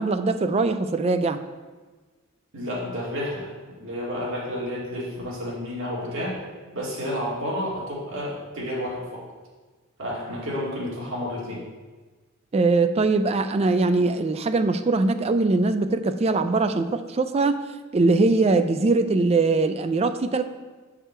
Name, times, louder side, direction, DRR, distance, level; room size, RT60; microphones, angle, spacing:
voice 1, 0.0-1.4 12.5-17.5 17.9-20.4, right 3 dB, 30° right, 10 dB, 0.4 m, -21 dB
voice 2, 2.5-6.4 6.7-9.2 10.0-11.6, equal, 65° right, -5 dB, 2.1 m, -31 dB
7.9 x 4.8 x 4.4 m, 1.3 s
head